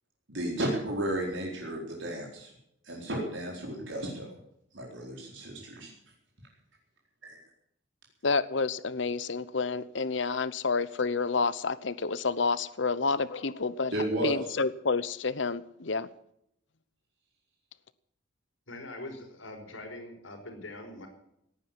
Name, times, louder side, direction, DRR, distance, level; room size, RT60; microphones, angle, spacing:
voice 1, 0.3-2.5 2.8-4.3 4.7-5.9 13.9-14.4, right 1 dB, 70° right, -2 dB, 4.3 m, -33 dB
voice 2, 8.2-13.9 14.2-16.1, left 4 dB, 70° left, 16 dB, 0.8 m, -29 dB
voice 3, 18.7-21.1, left 2 dB, 85° left, 3 dB, 5.3 m, -43 dB
18.0 x 9.8 x 7.6 m, 0.76 s
head